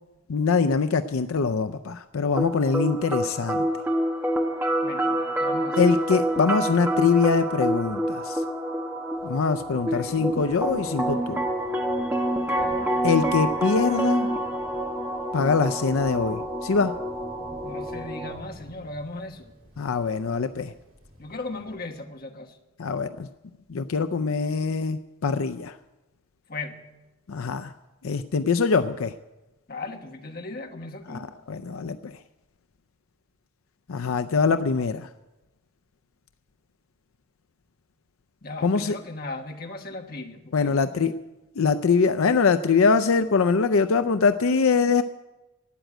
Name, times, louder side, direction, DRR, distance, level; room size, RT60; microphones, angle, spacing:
voice 1, 0.3-3.7 5.8-8.4 9.2-11.4 13.0-14.3 15.3-16.9 19.8-20.7 22.8-23.3 23.7-25.8 27.3-27.7 28.0-29.1 31.1-32.2 33.9-35.1 38.6-38.9 40.5-41.1 41.6-45.0, left 5 dB, 80° left, 10 dB, 0.5 m, -23 dB
sound 1, 2.4-18.4, right 1 dB, 10° right, 1.2 m, -27 dB
voice 2, 4.8-5.9 9.7-10.3 12.5-12.9 17.6-19.5 21.2-22.6 26.5-26.8 29.7-31.3 38.4-41.1, left 2 dB, 45° left, 3 dB, 1.4 m, -37 dB
Thunder / Rain, 9.1-22.0, right 1 dB, 70° right, 3.1 m, -49 dB
13.0 x 9.1 x 8.9 m, 1.0 s
head